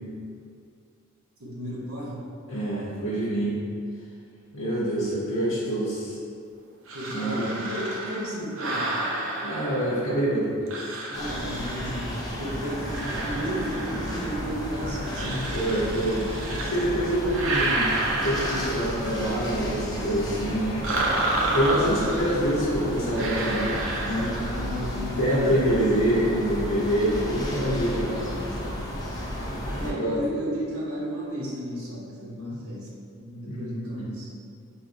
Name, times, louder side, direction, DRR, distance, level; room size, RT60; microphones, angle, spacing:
voice 1, 1.4-2.2 6.9-8.9 11.1-12.1 12.4-15.3 24.5-25.3 29.7-32.9 33.2-34.3, equal, 90° right, -5 dB, 0.8 m, -33 dB
voice 2, 2.5-3.6 4.5-6.2 7.1-7.5 9.4-10.5 15.2-16.2 16.5-17.9 18.2-20.8 21.5-24.4 25.2-28.8 29.8-30.2 32.5-32.6 33.5-34.1, right 1 dB, 80° left, -9 dB, 0.8 m, -26 dB
sound 1, 6.9-10.2 10.7-12.2 12.8-14.5 15.1-16.9 17.2-19.2 20.8-22.5 23.2-24.7, right 2 dB, 65° right, 0.5 m, -30 dB
sound 2, 11.1-29.9, left 1 dB, 20° left, 0.4 m, -33 dB
4.9 x 2.5 x 2.5 m, 2.4 s
head